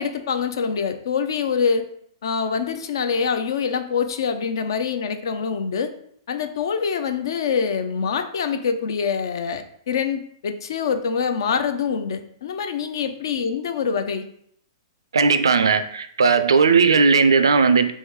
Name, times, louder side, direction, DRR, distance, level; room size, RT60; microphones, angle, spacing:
voice 1, 0.0-1.8 2.2-5.9 6.3-14.2, left 6 dB, 65° left, 9 dB, 0.4 m, -25 dB
voice 2, 15.1-17.9, right 5 dB, 80° right, 10 dB, 0.4 m, -17 dB
3.1 x 3.1 x 3.5 m, 0.66 s
hypercardioid pair, 120°, 2 cm